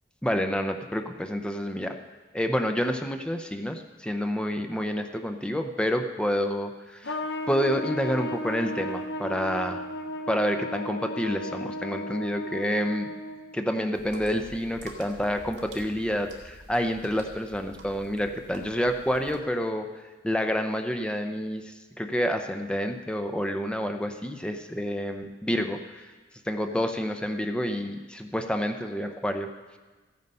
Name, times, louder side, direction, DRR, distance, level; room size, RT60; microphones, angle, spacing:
voice 1, 0.2-2.0 2.3-7.2 7.5-9.8 10.3-13.1 13.5-19.9 20.2-26.1 26.5-29.5, equal, 5° left, 5 dB, 0.6 m, -28 dB
Trumpet, 7.0-13.6, left 1 dB, 65° left, 0.7 m, -34 dB
sound 1, 13.9-19.4, right 1 dB, 85° right, 1.8 m, -48 dB
14.0 x 9.5 x 5.4 m, 1.3 s
head